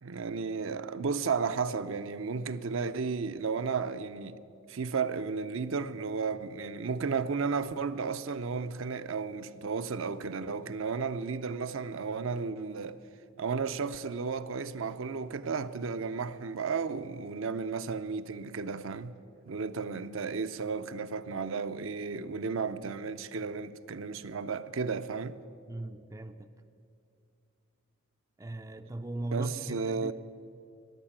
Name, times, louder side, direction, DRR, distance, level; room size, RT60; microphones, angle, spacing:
voice 1, 0.0-4.4 4.7-13.0 13.4-19.1 19.5-25.4 29.3-30.1, right 5 dB, 65° right, 0.5 m, -33 dB
voice 2, 25.7-26.5 28.4-30.1, right 1 dB, 15° right, 0.4 m, -39 dB
14.5 x 11.0 x 8.7 m
head